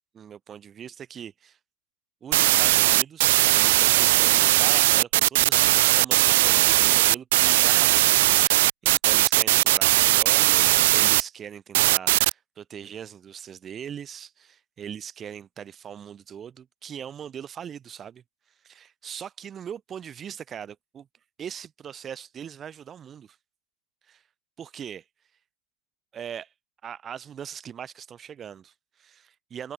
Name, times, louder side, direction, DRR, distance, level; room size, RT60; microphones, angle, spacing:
voice 1, 0.1-1.6 2.2-8.0 8.4-18.2 18.6-21.1 21.4-23.4 24.1-24.2 24.6-25.0 26.1-26.5 26.8-29.7, right 8 dB, 25° right, 2.9 m, -40 dB
sound 1, 2.3-11.2 11.7-12.3, right 18 dB, 50° right, 0.9 m, -19 dB
open air
figure-of-eight pair, 90°, 0 cm